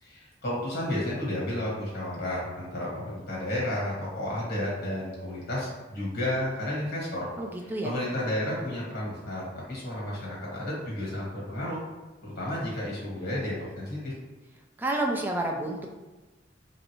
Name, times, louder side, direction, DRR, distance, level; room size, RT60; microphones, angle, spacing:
voice 1, 0.0-7.3 7.8-11.8 12.2-14.1, left 1 dB, 55° left, -5 dB, 1.3 m, -32 dB
voice 2, 7.4-7.9 14.8-15.9, right 1 dB, 10° right, 1 dB, 0.3 m, -29 dB
3.1 x 2.5 x 3.0 m, 1.2 s
head